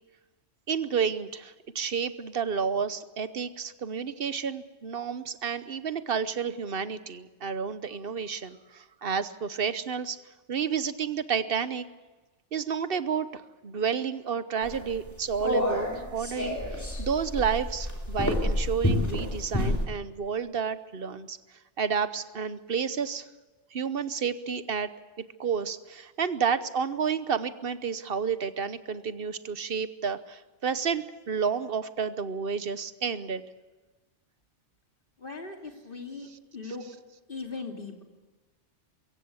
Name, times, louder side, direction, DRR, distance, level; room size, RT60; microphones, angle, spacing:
voice 1, 0.7-10.2 10.5-11.8 12.5-21.4 21.8-23.3 23.7-24.9 25.4-33.4, right 6 dB, 50° right, 13 dB, 1.1 m, -30 dB
sound 1, 14.6-19.8, left 1 dB, 15° left, 3.6 m, -29 dB
voice 2, 35.2-36.3 36.5-36.8 37.3-38.0, left 3 dB, 45° left, 2 dB, 2.9 m, -38 dB
22.5 x 16.5 x 8.3 m, 1.3 s
omnidirectional pair, 1.3 m